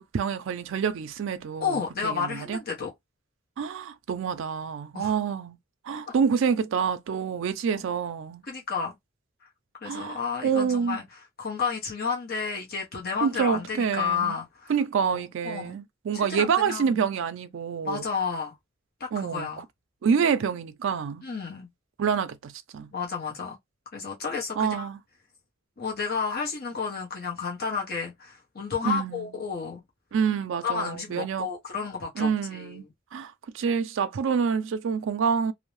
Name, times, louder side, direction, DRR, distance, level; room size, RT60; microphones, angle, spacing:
voice 1, 0.0-2.6 3.6-5.6 5.8-8.4 9.9-11.0 13.2-14.4 14.7-18.0 19.1-19.6 20.0-21.2 22.0-22.9 24.6-25.0 28.8-29.3 30.1-31.5 32.2-32.8 33.1-35.5, right 6 dB, 65° right, 0.4 m, -27 dB
voice 2, 1.6-2.9 4.9-5.2 7.7-7.8 8.5-8.9 9.8-11.0 11.4-14.7 15.0-15.8 16.1-17.0 17.8-18.5 19.0-19.6 21.2-21.7 22.9-23.6 23.9-24.9 25.8-29.8 30.6-32.9, left 6 dB, 50° left, 0.8 m, -31 dB
2.6 x 2.0 x 3.1 m
head